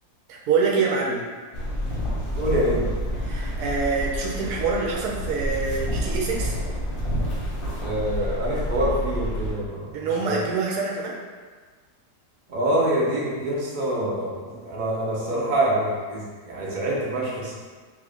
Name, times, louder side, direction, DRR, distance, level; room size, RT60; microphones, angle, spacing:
voice 1, 0.3-1.2 3.2-6.6 9.9-11.2, right 4 dB, 75° right, -2 dB, 1.0 m, -25 dB
sound 1, 1.5-9.5, equal, 45° left, 0.8 m, -28 dB
voice 2, 2.3-2.9 7.8-9.9 10.3-10.4 12.5-17.5, right 1 dB, 50° right, -6 dB, 0.5 m, -25 dB
2.9 x 2.5 x 3.5 m, 1.5 s
omnidirectional pair, 1.8 m